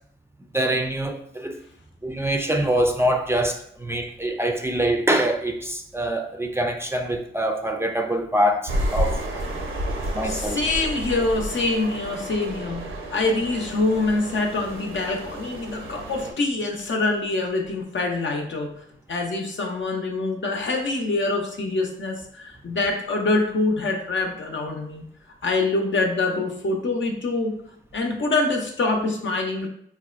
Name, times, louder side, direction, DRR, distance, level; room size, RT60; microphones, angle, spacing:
voice 1, 0.5-1.6 2.0-9.2 10.1-10.6, right 1 dB, 10° right, 0.5 m, -24 dB
sound 1, 8.7-16.3, right 1 dB, 70° right, 0.7 m, -31 dB
voice 2, 10.2-12.8 13.1-18.7 19.1-25.0 25.4-27.5 27.9-29.7, left 2 dB, 65° left, 0.7 m, -25 dB
4.6 x 2.1 x 2.4 m
cardioid pair, 55°, 21 cm